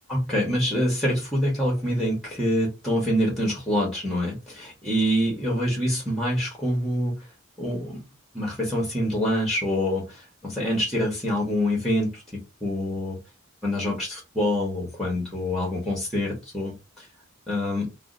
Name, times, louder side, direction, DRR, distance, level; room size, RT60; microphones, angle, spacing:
voice 1, 0.1-7.2 7.6-8.0 8.3-13.2 13.6-17.1 17.5-17.9, equal, ahead, -2 dB, 1.0 m, -26 dB
2.7 x 2.2 x 3.8 m, 0.26 s
head